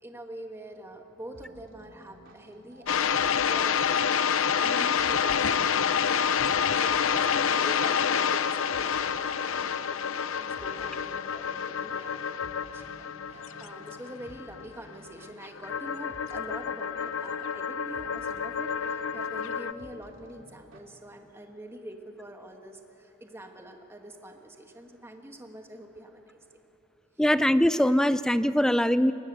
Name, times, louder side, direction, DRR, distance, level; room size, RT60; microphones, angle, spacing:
voice 1, 0.0-4.1 4.6-26.4, right 1 dB, 10° right, 4 dB, 1.4 m, -45 dB
sound 1, 1.3-20.8, right 1 dB, 75° right, 2.7 m, -54 dB
sound 2, 2.9-19.7, left 7 dB, 80° left, 0.7 m, -28 dB
voice 2, 27.2-29.1, equal, 5° left, 14 dB, 0.4 m, -22 dB
21.5 x 19.0 x 8.2 m, 3.0 s
head